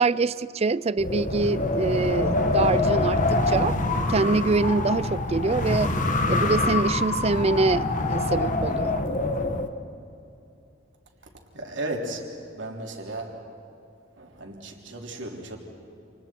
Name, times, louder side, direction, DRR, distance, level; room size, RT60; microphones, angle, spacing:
voice 1, 0.0-3.8 4.1-5.9 6.3-9.0, right 3 dB, 30° right, 0.4 m, -25 dB
Wind, 1.0-9.7, left 2 dB, 40° left, 1.4 m, -25 dB
voice 2, 11.5-13.4 14.2-15.6, right 1 dB, 65° right, 3.5 m, -35 dB
29.0 x 28.0 x 4.6 m
head